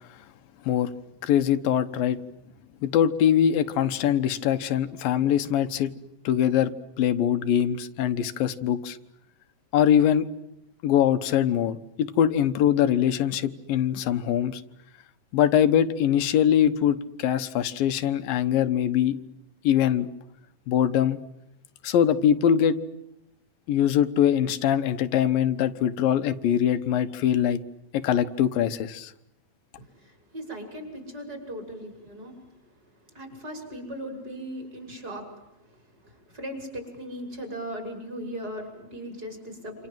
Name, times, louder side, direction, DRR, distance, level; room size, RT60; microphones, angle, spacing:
voice 1, 1.2-2.2 2.8-5.9 6.2-6.7 7.0-9.0 9.7-10.3 10.8-14.6 15.3-19.2 19.6-20.1 20.7-21.2 21.8-22.8 23.7-27.6 27.9-29.1, left 9 dB, 90° left, 10 dB, 2.9 m, -22 dB
voice 2, 29.8-32.4 33.1-35.4 36.0-39.9, equal, 25° right, 5 dB, 6.7 m, -38 dB
28.0 x 28.0 x 7.6 m, 0.85 s
omnidirectional pair, 3.9 m